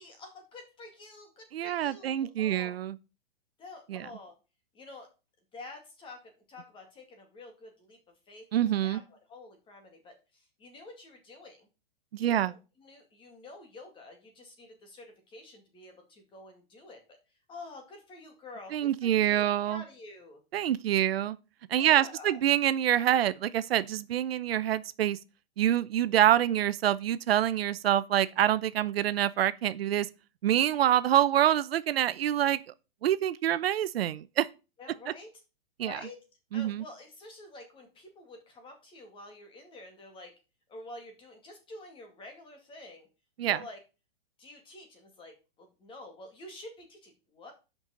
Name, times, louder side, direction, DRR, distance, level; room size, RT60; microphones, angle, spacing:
voice 1, 0.0-2.7 3.6-4.3 4.7-5.1 5.5-8.0 8.3-8.5 8.8-11.7 12.2-17.0 17.5-20.4 21.8-22.4 34.8-35.3 35.8-36.2 36.5-40.3 40.7-43.1 43.5-43.8 44.4-47.5, left 2 dB, 15° left, 2.2 m, -48 dB
voice 2, 1.5-3.0 3.9-4.1 8.5-9.0 12.1-12.5 18.7-19.8 20.5-21.4 21.7-25.2 25.6-30.1 30.4-32.6 33.0-34.5 35.8-36.0 36.5-36.8 43.4-43.6, right 11 dB, 80° right, 0.7 m, -26 dB
6.1 x 5.4 x 6.4 m
hypercardioid pair, 150°, 30 cm